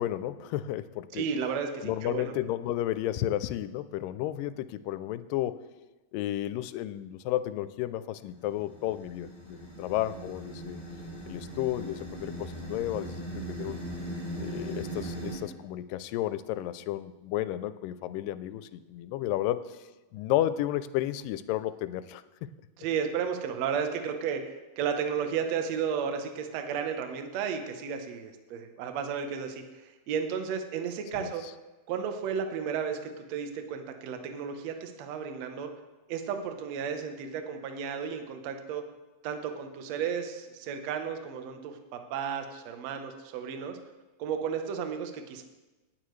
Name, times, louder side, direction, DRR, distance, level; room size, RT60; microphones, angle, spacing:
voice 1, 0.0-1.3 1.8-5.6 6.1-10.8 11.3-13.8 14.4-19.8 20.1-22.2 31.2-31.3, left 13 dB, 90° left, 14 dB, 2.2 m, -32 dB
voice 2, 1.1-2.3 22.8-24.4 24.8-31.4 31.9-35.7 36.1-38.8 39.2-43.8 44.2-45.4, right 7 dB, 65° right, 6 dB, 1.9 m, -33 dB
sound 1, 8.2-15.4, right 1 dB, 10° left, 4.4 m, -39 dB
18.5 x 9.1 x 3.2 m, 1.1 s
omnidirectional pair, 3.8 m